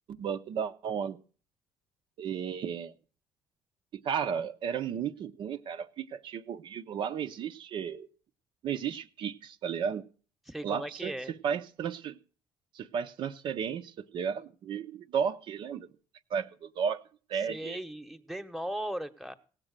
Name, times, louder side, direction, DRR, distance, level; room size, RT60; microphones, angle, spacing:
voice 1, 0.1-1.2 2.2-2.9 3.9-8.1 8.6-10.0 10.6-11.1 11.4-12.2 12.7-15.9 16.3-17.0 17.3-17.8, right 7 dB, 60° right, 0.8 m, -33 dB
voice 2, 10.5-11.3 17.4-19.3, right 1 dB, ahead, 1.1 m, -37 dB
17.0 x 7.6 x 6.6 m
supercardioid pair, 80°, 10 cm